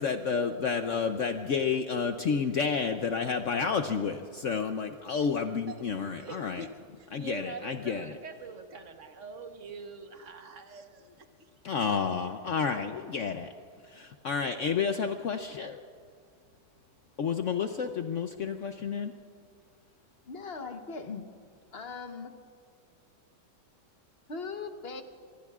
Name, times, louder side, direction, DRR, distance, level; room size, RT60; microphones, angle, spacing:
voice 1, 0.0-6.6 7.1-8.1 11.6-13.5 13.9-15.8 17.2-19.1, left 6 dB, 60° left, 7 dB, 0.8 m, -30 dB
voice 2, 6.1-6.7 7.0-11.8, right 4 dB, 50° right, 6 dB, 1.4 m, -44 dB
voice 3, 20.3-21.3 21.7-22.3 24.3-25.0, left 4 dB, 40° left, 6 dB, 1.1 m, -39 dB
24.5 x 22.5 x 2.4 m, 2.1 s
omnidirectional pair, 1.8 m